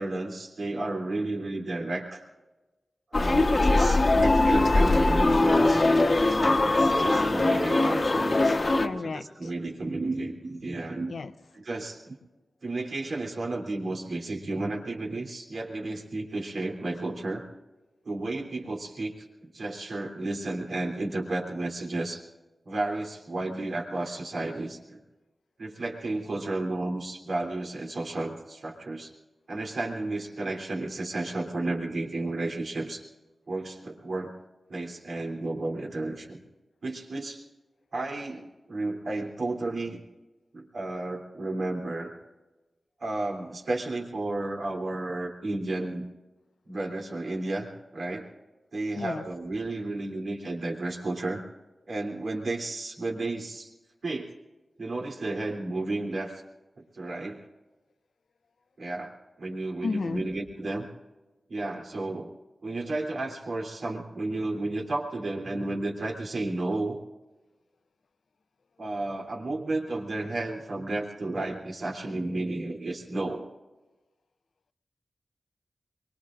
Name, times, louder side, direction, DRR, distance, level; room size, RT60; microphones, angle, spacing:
voice 1, 0.0-2.2 3.1-5.9 6.4-8.6 9.0-11.1 11.5-12.1 12.6-17.4 18.0-22.2 22.6-25.0 25.6-29.1 29.5-33.0 33.5-34.3 34.7-36.4 36.8-37.4 37.9-40.0 40.5-42.1 43.0-46.0 46.7-47.7 47.9-48.3 48.7-51.4 51.9-53.7 54.0-54.3 54.8-56.4 56.9-57.5 58.8-60.9 61.5-62.3 62.6-67.0 68.8-73.5, right 2 dB, 75° right, 0 dB, 3.2 m, -32 dB
sound 1, 3.1-8.9, left 2 dB, 40° left, 1.2 m, -21 dB
voice 2, 8.8-9.5 11.1-11.3 49.0-49.2 59.8-60.2, left 4 dB, 75° left, 11 dB, 0.7 m, -33 dB
24.5 x 23.0 x 2.6 m, 1.1 s
wide cardioid pair, 110°, 0 cm